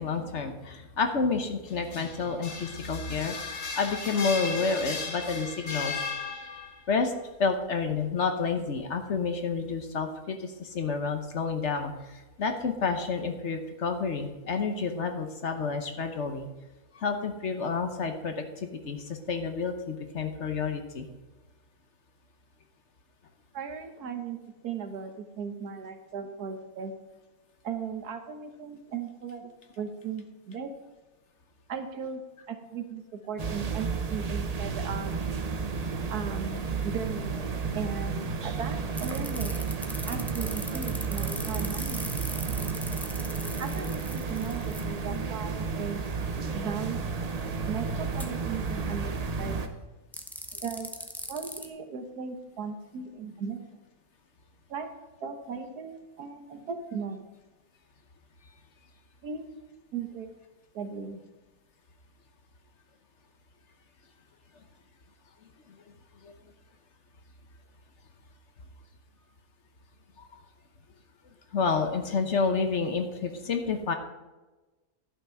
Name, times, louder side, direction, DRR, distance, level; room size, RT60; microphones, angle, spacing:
voice 1, 0.0-5.9 6.9-7.1 7.4-16.5 16.9-21.1 66.2-66.3 71.5-73.9, left 4 dB, 55° left, 6 dB, 1.2 m, -29 dB
sound 1, 1.7-6.9, left 4 dB, 85° left, 1.9 m, -36 dB
voice 2, 23.5-26.9 27.6-29.5 29.8-30.7 31.7-32.2 32.5-35.1 36.1-39.5 40.1-42.2 43.6-46.0 46.5-47.3 47.7-49.6 50.6-50.9 51.3-53.8 54.7-54.9 55.2-57.2 59.2-59.4 59.9-60.3 60.7-61.2, right 6 dB, 85° right, 7 dB, 1.6 m, -37 dB
sound 2, 33.4-49.7, right 5 dB, 45° right, 0.5 m, -32 dB
sound 3, 38.9-44.8 48.1-48.3 50.1-51.7, equal, ahead, 0.5 m, -39 dB
11.0 x 6.0 x 5.6 m, 1.1 s
omnidirectional pair, 1.6 m